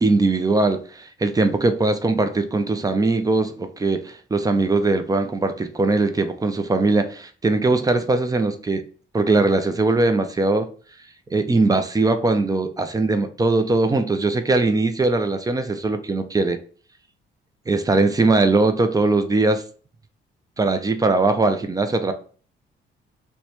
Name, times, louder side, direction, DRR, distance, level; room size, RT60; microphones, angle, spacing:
voice 1, 0.0-8.8 9.1-10.7 11.3-16.6 17.7-19.6 20.6-22.1, right 3 dB, 20° right, 0.5 m, -20 dB
3.0 x 2.2 x 4.1 m
cardioid pair, 90°, 20 cm